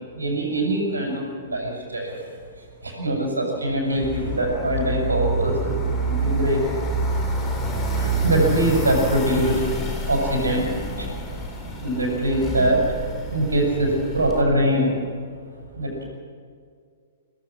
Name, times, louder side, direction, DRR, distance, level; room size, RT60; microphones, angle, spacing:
voice 1, 0.1-2.1 2.8-6.6 7.9-9.6 10.1-11.1 11.8-12.8 13.3-14.9 15.8-16.0, right 1 dB, 80° right, -2 dB, 6.8 m, -23 dB
sound 1, 4.0-14.4, right 1 dB, 15° left, 4.0 m, -27 dB
24.0 x 19.0 x 6.4 m, 2.1 s
figure-of-eight pair, 110°, 0 cm